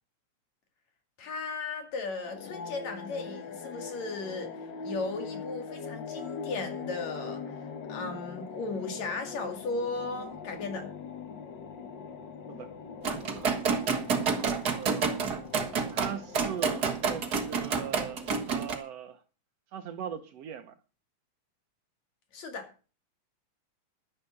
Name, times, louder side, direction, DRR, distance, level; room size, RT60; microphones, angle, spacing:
voice 1, 1.2-7.6 7.9-10.9 22.3-22.7, left 3 dB, 65° left, 3.6 m, -36 dB
sound 1, 2.2-18.7, left 5 dB, 50° left, 1.5 m, -42 dB
sound 2, 13.0-18.8, right 5 dB, 40° right, 1.6 m, -29 dB
voice 2, 14.4-15.2 15.9-19.2 19.7-20.8, right 8 dB, 65° right, 1.8 m, -40 dB
11.5 x 10.5 x 5.9 m
omnidirectional pair, 3.4 m